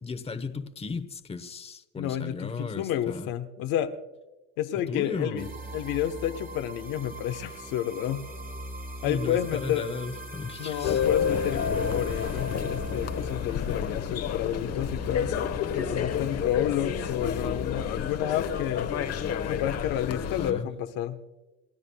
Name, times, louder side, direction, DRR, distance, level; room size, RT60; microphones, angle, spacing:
voice 1, 0.0-3.3 4.9-5.5 9.0-11.1 20.0-20.7, left 4 dB, 15° left, 9 dB, 1.0 m, -35 dB
voice 2, 2.0-3.9 4.6-5.5 5.7-8.2 9.0-9.8 10.6-18.9 19.4-21.2, left 11 dB, 75° left, 7 dB, 1.1 m, -30 dB
sound 1, 5.4-20.5, equal, 25° right, 1.8 m, -41 dB
sound 2, 10.8-20.5, left 7 dB, 45° left, 1.2 m, -30 dB
29.5 x 12.5 x 2.3 m, 1.1 s
supercardioid pair, 105°, 34 cm